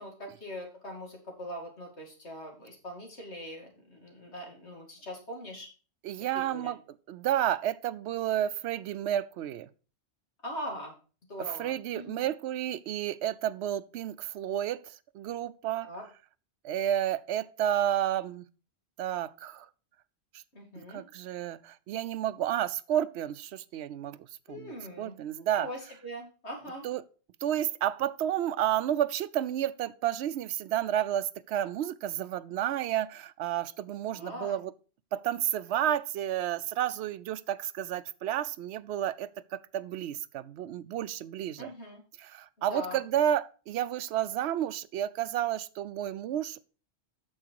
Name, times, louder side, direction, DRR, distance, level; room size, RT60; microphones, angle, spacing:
voice 1, 0.0-5.7 6.3-6.7 10.4-10.9 11.3-12.3 15.8-16.0 20.5-21.0 24.5-25.2 25.5-26.9 34.1-34.6 41.6-42.0 42.6-43.0, equal, 85° left, 2.7 m, -41 dB
voice 2, 6.0-6.8 7.1-9.7 11.6-15.9 16.6-18.5 19.0-19.7 20.3-20.4 20.8-25.7 26.8-27.0 27.4-34.7 35.1-41.7 42.2-46.6, right 11 dB, 80° right, 0.8 m, -31 dB
8.8 x 6.5 x 4.6 m
omnidirectional pair, 1.1 m